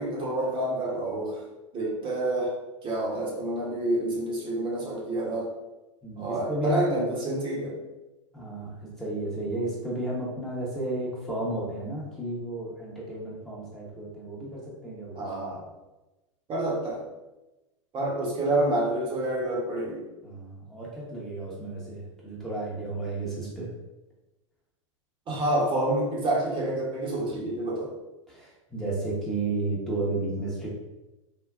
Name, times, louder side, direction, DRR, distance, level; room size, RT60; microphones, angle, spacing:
voice 1, 0.0-1.4 1.7-2.6 2.8-5.5 6.2-7.8 15.1-15.6 16.5-17.0 17.9-20.0 25.3-27.9, right 1 dB, 30° right, -3 dB, 0.9 m, -28 dB
voice 2, 6.0-7.1 8.3-15.2 20.2-23.7 28.3-30.7, right 2 dB, 5° left, -7 dB, 0.8 m, -32 dB
3.5 x 2.1 x 2.3 m, 1.0 s
hypercardioid pair, 95°, 17 cm